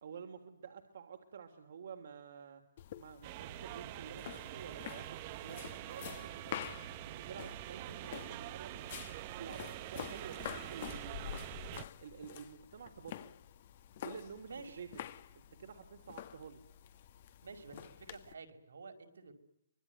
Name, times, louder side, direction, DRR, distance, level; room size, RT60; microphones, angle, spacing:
voice 1, 0.0-2.6 3.0-6.7 7.0-9.0 9.4-11.5 12.0-13.3 14.0-14.9 15.3-16.6, right 7 dB, 70° right, 7 dB, 3.1 m, -50 dB
sound 1, 2.8-18.3, left 11 dB, 50° left, 2.0 m, -48 dB
sound 2, 3.2-11.8, right 15 dB, 40° right, 1.2 m, -45 dB
voice 2, 14.4-14.8 17.4-19.3, right 4 dB, 85° right, 7 dB, 5.2 m, -50 dB
25.5 x 21.0 x 9.3 m, 0.76 s
hypercardioid pair, 145°, 0 cm